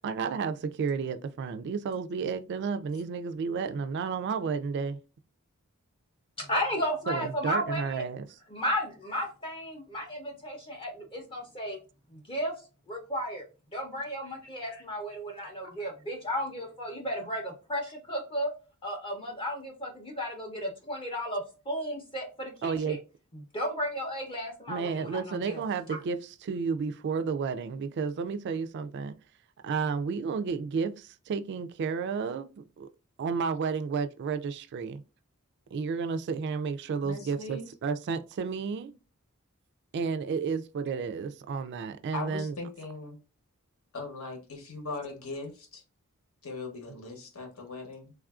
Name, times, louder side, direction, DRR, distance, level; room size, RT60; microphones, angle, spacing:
voice 1, 0.0-5.0 7.1-8.3 22.6-23.0 24.7-29.2 29.6-32.9 33.2-35.0 35.7-38.9 39.9-42.6, right 5 dB, 50° right, 0.3 m, -32 dB
voice 2, 6.4-8.0 8.5-11.8 12.1-12.5 12.9-13.4 13.7-17.4 17.7-18.5 18.8-23.0 23.5-25.6, equal, 25° left, 0.5 m, -34 dB
voice 3, 37.0-37.7 42.1-43.2 43.9-45.8 46.4-48.1, left 3 dB, 75° left, 0.9 m, -39 dB
3.3 x 2.4 x 2.3 m
head